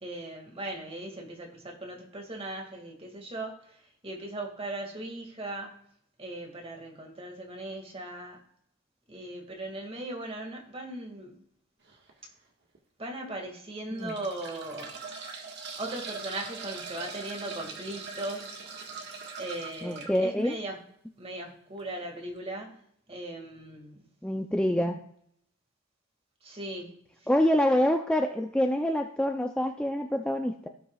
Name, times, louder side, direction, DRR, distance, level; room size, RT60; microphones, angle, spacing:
voice 1, 0.0-5.8 6.2-8.4 9.1-11.3 13.0-15.0 15.8-18.9 19.4-20.8 21.2-22.8 23.1-24.0 26.4-26.9 27.2-27.3, right 1 dB, 30° right, 1 dB, 2.1 m, -38 dB
sound 1, 11.9-12.1 12.7-12.8 13.8-20.2 21.8-21.9 22.2-22.3, right 4 dB, 55° right, 1.6 m, -41 dB
voice 2, 19.8-20.6 24.2-25.0 27.3-30.7, left 1 dB, 5° left, 3 dB, 0.5 m, -26 dB
17.5 x 5.9 x 2.4 m, 0.67 s
head